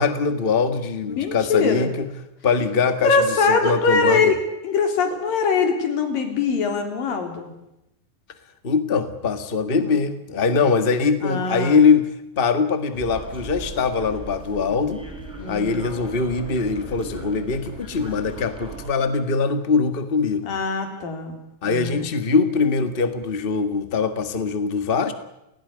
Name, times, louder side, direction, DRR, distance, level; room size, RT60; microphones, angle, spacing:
voice 1, 0.0-2.1 2.4-4.3 8.6-12.1 12.4-15.0 15.5-20.5 21.6-25.1, left 5 dB, 80° left, 10 dB, 0.5 m, -22 dB
voice 2, 1.0-1.9 3.0-4.4 4.6-7.5 9.8-10.0 11.2-11.8 15.4-15.9 20.4-21.4 21.6-22.1, left 4 dB, 65° left, 5 dB, 5.3 m, -22 dB
sound 1, 12.9-18.9, right 2 dB, ahead, 6.3 m, -38 dB
29.0 x 17.5 x 9.8 m, 0.86 s
omnidirectional pair, 4.3 m